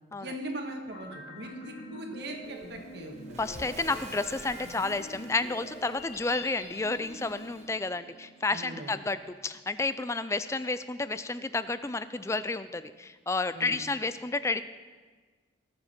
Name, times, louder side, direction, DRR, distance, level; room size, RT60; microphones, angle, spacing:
voice 1, 0.2-3.4 8.5-8.9 13.5-13.8, right 1 dB, 60° right, 3 dB, 1.6 m, -40 dB
sound 1, 0.9-8.8, equal, 55° left, 1.5 m, -46 dB
Waves surf, 2.4-7.6, right 2 dB, 35° right, 1.3 m, -50 dB
voice 2, 3.4-14.6, left 3 dB, 15° left, 13 dB, 0.4 m, -31 dB
20.5 x 7.4 x 4.4 m, 1.5 s
head